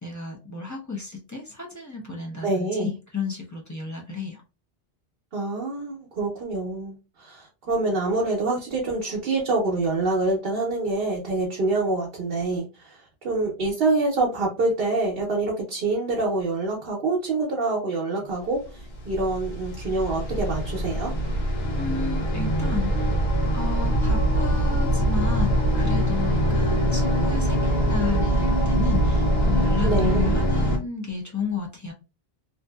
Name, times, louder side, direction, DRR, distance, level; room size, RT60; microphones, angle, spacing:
voice 1, 0.0-4.4 21.8-23.2 23.5-31.9, left 4 dB, 20° left, -3 dB, 0.6 m, -33 dB
voice 2, 2.4-2.9 5.3-21.1 29.8-30.3, right 2 dB, 70° right, -2 dB, 0.9 m, -26 dB
sound 1, 18.7-30.8, equal, 75° left, 1.0 m, -23 dB
2.6 x 2.5 x 2.3 m, 0.31 s
omnidirectional pair, 1.0 m